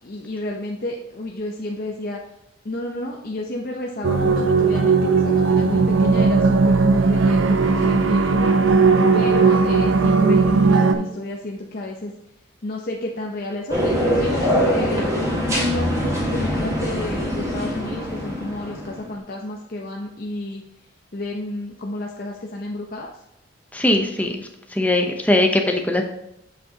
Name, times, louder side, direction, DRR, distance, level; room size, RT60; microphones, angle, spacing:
voice 1, 0.0-2.2 2.6-8.5 9.1-12.1 12.6-15.2 15.5-20.6 21.1-23.1, left 1 dB, 50° left, 0 dB, 0.7 m, -31 dB
sound 1, 4.0-10.9, right 4 dB, 80° right, 0.6 m, -17 dB
sound 2, 13.7-19.1, equal, 15° right, 1.6 m, -23 dB
voice 2, 23.7-26.0, left 1 dB, 10° left, 3 dB, 0.7 m, -20 dB
8.0 x 7.0 x 2.9 m, 0.82 s
head